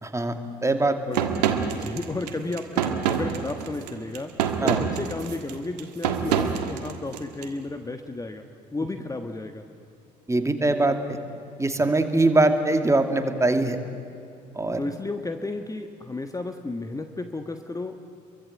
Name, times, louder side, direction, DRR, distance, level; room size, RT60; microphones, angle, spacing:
voice 1, 0.0-1.0 4.6-4.8 10.3-11.2 11.6-13.8 14.6-14.8, right 2 dB, 15° right, 7 dB, 2.4 m, -22 dB
sound 1, 1.1-7.5, right 8 dB, 70° right, 1.6 m, -27 dB
voice 2, 1.7-4.3 4.6-8.5 8.7-9.7 11.8-11.9 14.7-18.0, left 2 dB, 15° left, 7 dB, 1.4 m, -33 dB
29.5 x 23.5 x 8.1 m, 2.6 s
figure-of-eight pair, 50°, 21 cm